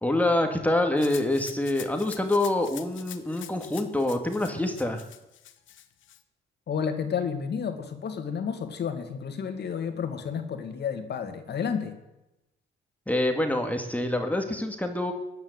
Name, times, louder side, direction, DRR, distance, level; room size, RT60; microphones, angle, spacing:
voice 1, 0.0-5.0 13.1-15.1, left 1 dB, 5° left, 4 dB, 2.0 m, -26 dB
Rattle (instrument), 1.0-6.2, left 11 dB, 75° left, 1.2 m, -45 dB
voice 2, 6.7-12.0, left 7 dB, 60° left, 7 dB, 2.3 m, -31 dB
17.0 x 10.5 x 8.1 m, 0.95 s
cardioid pair, 90°, 20 cm